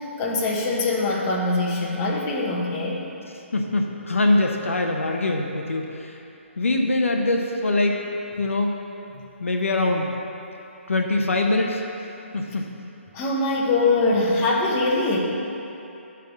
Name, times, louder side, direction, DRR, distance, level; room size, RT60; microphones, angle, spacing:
voice 1, 0.0-3.0 13.1-15.2, left 2 dB, 25° left, -3 dB, 1.3 m, -23 dB
voice 2, 3.5-6.2 6.6-8.0 8.4-8.7 9.4-10.1 10.9-11.8 12.3-12.7, left 2 dB, 80° left, 2 dB, 0.9 m, -23 dB
10.5 x 3.7 x 7.1 m, 2.8 s
figure-of-eight pair, 140°, 7 cm